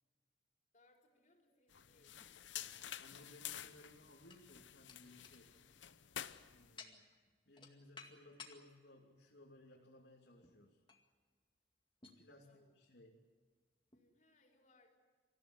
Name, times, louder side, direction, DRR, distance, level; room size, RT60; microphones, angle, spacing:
voice 1, 0.7-2.4 12.4-12.7 13.9-14.9, left 2 dB, 40° left, 1 dB, 4.3 m, -71 dB
sound 1, 1.7-6.8, left 11 dB, 90° left, 0.8 m, -50 dB
sound 2, 2.1-3.2 3.9-8.7 9.2-9.3 10.4-10.6 10.9-11.1 12.0-12.2 13.0-13.1 13.9-14.0, left 5 dB, 25° left, 2.2 m, -58 dB
voice 2, 3.0-5.5 6.5-7.1 7.5-10.8 12.2-13.2, left 1 dB, 70° left, -3 dB, 2.9 m, -61 dB
sound 3, 3.1-6.9, right 6 dB, 60° right, 6.4 m, -81 dB
25.5 x 15.5 x 9.8 m, 1.5 s
head